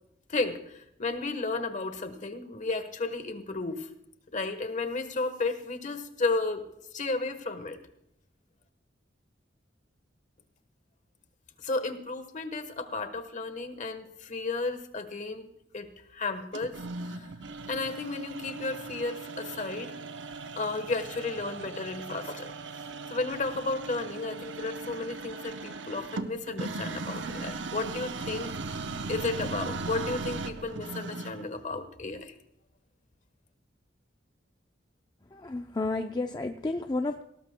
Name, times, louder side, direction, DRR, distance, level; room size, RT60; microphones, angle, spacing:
voice 1, 0.3-3.9 4.3-6.7 6.9-7.8 11.6-16.7 17.1-17.3 17.7-19.9 20.5-22.5 23.1-28.5 29.1-32.3, left 3 dB, 40° left, 9 dB, 1.2 m, -33 dB
sound 1, 16.5-31.5, right 3 dB, 70° right, 0.8 m, -38 dB
voice 2, 35.3-37.2, left 2 dB, 20° left, 5 dB, 0.5 m, -31 dB
18.5 x 18.0 x 2.2 m, 0.77 s
head